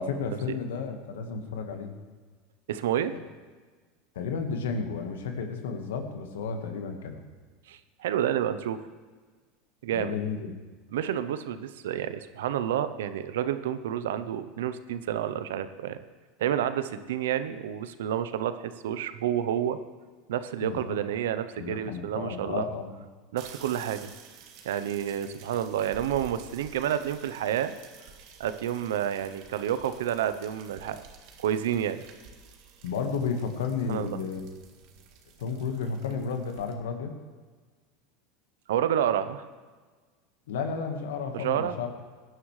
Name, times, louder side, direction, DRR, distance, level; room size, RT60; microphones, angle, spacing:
voice 1, 0.0-2.0 4.1-7.2 9.9-10.5 20.6-21.0 21.6-22.9 32.8-34.5 35.4-37.1 40.5-41.9, left 5 dB, 85° left, 5 dB, 1.5 m, -32 dB
voice 2, 2.7-3.1 7.7-8.8 9.8-10.1 10.9-16.0 16.4-19.8 20.3-22.6 23.3-24.1 24.6-27.7 28.4-31.0 31.4-32.0 33.9-34.2 38.7-39.4 41.3-41.7, right 10 dB, 80° right, 12 dB, 0.7 m, -29 dB
sound 1, 23.4-36.7, right 6 dB, 60° right, 1.7 m, -51 dB
18.0 x 11.0 x 3.3 m, 1.4 s
hypercardioid pair, 95°, 0 cm